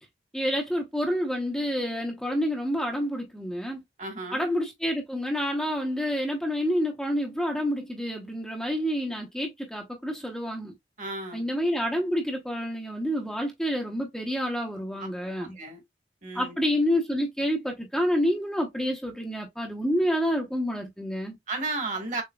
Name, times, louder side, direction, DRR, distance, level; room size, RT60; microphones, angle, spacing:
voice 1, 0.3-3.8 4.3-10.7 11.3-15.6 16.3-21.4, equal, 5° left, 0.8 m, -28 dB
voice 2, 4.0-4.5 11.0-11.4 15.4-15.8 16.2-16.6 21.5-22.2, right 3 dB, 40° right, 1.6 m, -33 dB
6.8 x 2.8 x 2.3 m
head